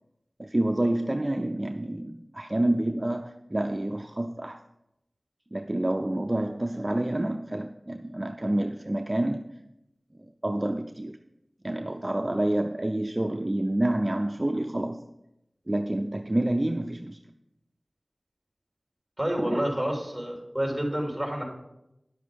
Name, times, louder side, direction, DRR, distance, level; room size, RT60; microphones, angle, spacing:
voice 1, 0.4-4.6 5.5-9.4 10.2-11.1 11.6-15.0 15.7-17.2 19.4-19.6, right 1 dB, 35° right, 6 dB, 0.5 m, -28 dB
voice 2, 19.2-21.4, equal, 5° right, 0 dB, 3.2 m, -28 dB
10.5 x 7.2 x 5.1 m, 0.87 s
wide cardioid pair, 50°, 0 cm